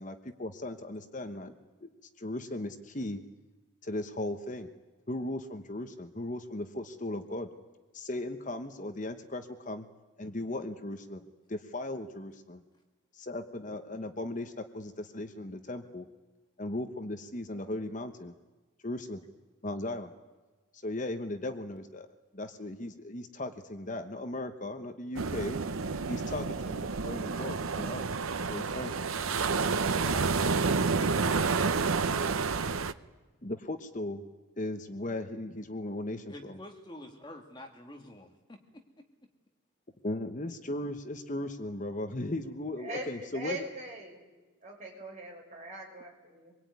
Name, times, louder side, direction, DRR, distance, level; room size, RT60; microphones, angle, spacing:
voice 1, 0.0-1.5 1.8-1.9 2.2-3.2 3.8-4.7 5.1-7.5 7.9-9.9 10.2-11.2 11.5-12.6 13.1-16.1 16.6-18.3 18.8-19.2 19.6-20.1 20.7-22.1 22.3-25.6 26.1-28.0 28.5-28.9 33.4-34.2 34.6-36.6 40.0-43.6, left 1 dB, 35° left, 7 dB, 1.1 m, -37 dB
sound 1, 25.2-32.9, right 4 dB, 80° right, 0.8 m, -29 dB
voice 2, 30.0-32.2 36.3-39.0, left 1 dB, 20° left, 3 dB, 1.7 m, -48 dB
voice 3, 42.8-44.2 44.6-46.6, right 2 dB, 35° right, -1 dB, 6.5 m, -41 dB
25.0 x 22.0 x 9.5 m, 1.3 s
head